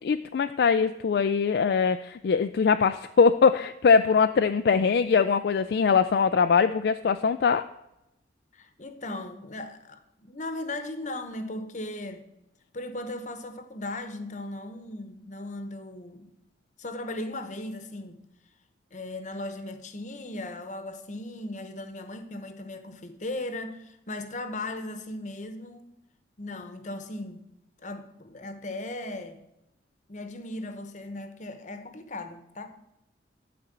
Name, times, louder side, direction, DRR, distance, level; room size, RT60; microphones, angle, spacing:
voice 1, 0.1-7.6, left 5 dB, 60° left, 0.3 m, -22 dB
voice 2, 8.5-12.3 12.7-16.3 16.8-18.2 18.9-25.8 26.4-27.4 27.8-29.4 30.1-32.7, left 2 dB, 40° left, 1.0 m, -37 dB
12.0 x 4.3 x 7.9 m
head